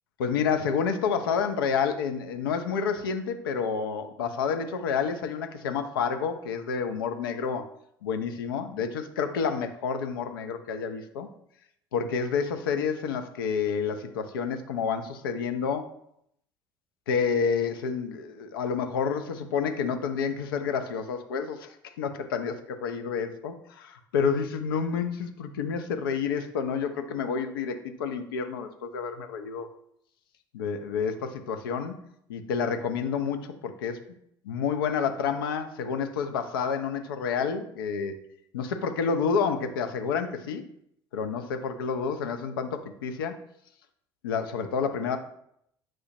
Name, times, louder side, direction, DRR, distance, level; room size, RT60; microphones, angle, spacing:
voice 1, 0.2-7.6 8.0-11.3 11.9-15.9 17.1-29.7 30.5-32.0 32.3-34.0 34.4-38.2 38.5-40.7 41.1-43.4 44.2-45.2, left 6 dB, 75° left, 7 dB, 0.4 m, -29 dB
6.1 x 2.1 x 2.7 m, 0.73 s
figure-of-eight pair, 60°, 12 cm